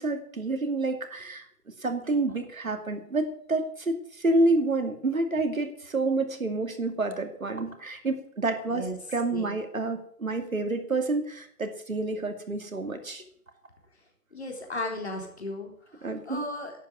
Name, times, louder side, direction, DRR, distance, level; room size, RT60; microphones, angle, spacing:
voice 1, 0.0-1.5 1.8-13.2 16.0-16.4, right 2 dB, 55° right, 6 dB, 2.4 m, -28 dB
voice 2, 14.3-15.7 16.3-16.7, left 1 dB, 40° left, 1 dB, 3.9 m, -34 dB
12.0 x 8.5 x 9.3 m, 0.64 s
figure-of-eight pair, 180°, 48 cm